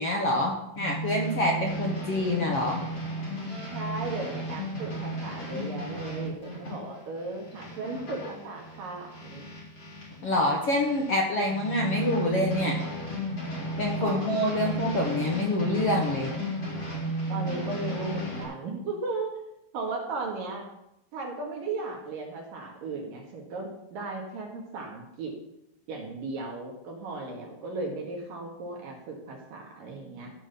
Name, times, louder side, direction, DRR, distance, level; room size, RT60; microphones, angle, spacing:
voice 1, 0.0-2.8 10.2-12.8 13.8-16.3, left 1 dB, 60° left, -1 dB, 1.6 m, -26 dB
sound 1, 0.7-10.2 10.6-18.4, right 1 dB, 25° left, 3.8 m, -34 dB
voice 2, 3.7-9.5 14.0-14.5 17.3-19.3 19.7-20.6 21.1-25.3 25.9-30.3, right 3 dB, 60° right, 0 dB, 3.3 m, -36 dB
14.5 x 6.1 x 6.9 m, 0.85 s
omnidirectional pair, 4.7 m